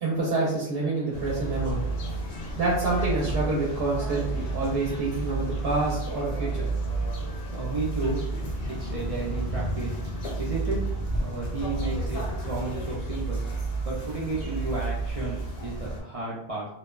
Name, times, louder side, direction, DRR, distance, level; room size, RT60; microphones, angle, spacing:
voice 1, 0.0-1.8 2.6-6.7, right 2 dB, 75° right, -5 dB, 0.8 m, -27 dB
sound 1, 1.1-16.0, right 2 dB, 70° left, 0.9 m, -31 dB
voice 2, 7.5-8.2 8.6-9.9 10.4-10.8 11.1-13.4 13.8-16.7, right 3 dB, 55° right, -6 dB, 0.4 m, -33 dB
2.7 x 2.1 x 2.2 m, 0.82 s
omnidirectional pair, 1.1 m